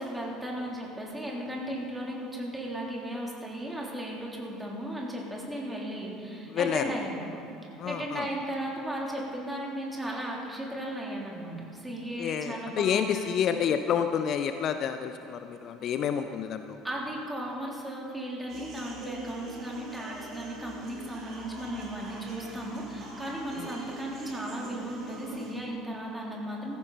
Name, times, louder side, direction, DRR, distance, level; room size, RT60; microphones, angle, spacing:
voice 1, 0.0-7.2 7.9-13.4 16.8-26.8, right 1 dB, 10° right, -3 dB, 3.5 m, -36 dB
voice 2, 6.5-6.9 7.8-8.3 12.2-16.8 23.6-23.7, left 8 dB, 45° left, 9 dB, 0.5 m, -29 dB
sound 1, 18.5-25.5, right 2 dB, 45° right, 3.5 m, -42 dB
15.5 x 14.5 x 4.3 m, 2.9 s
figure-of-eight pair, 60°, 0 cm